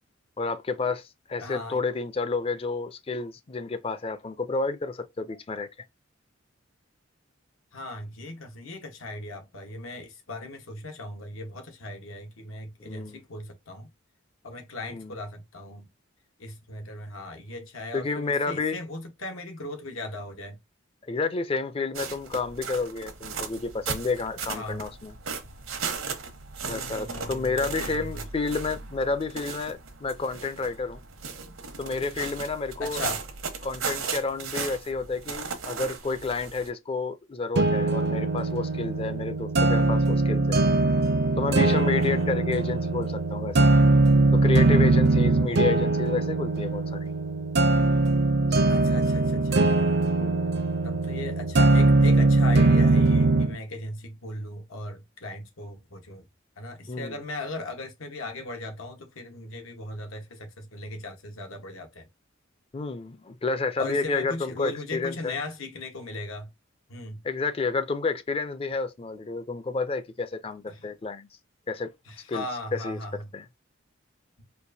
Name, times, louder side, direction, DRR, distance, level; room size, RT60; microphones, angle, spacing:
voice 1, 0.4-5.7 12.8-13.2 14.9-15.2 17.9-18.8 21.1-25.1 26.7-31.0 31.8-33.0 33.6-40.6 41.4-43.7 44.3-47.1 50.2-50.5 56.9-57.2 62.7-65.3 67.2-71.3 71.7-71.9 72.3-72.5 72.7-73.0 73.3-73.5, left 4 dB, 30° left, 0.4 m, -30 dB
voice 2, 1.4-1.8 7.7-13.9 14.4-15.9 16.4-20.6 24.5-24.9 26.6-28.2 31.4-31.5 32.8-33.2 41.9-42.3 45.5-45.8 48.7-49.6 50.8-56.3 56.6-62.1 63.8-66.5 66.9-67.2 70.7-70.9 72.1-73.3, left 2 dB, 85° left, 1.2 m, -38 dB
sound 1, 21.9-36.7, right 5 dB, 85° right, 1.0 m, -36 dB
sound 2, 37.6-53.6, right 2 dB, 55° right, 0.5 m, -21 dB
4.5 x 2.5 x 2.7 m
head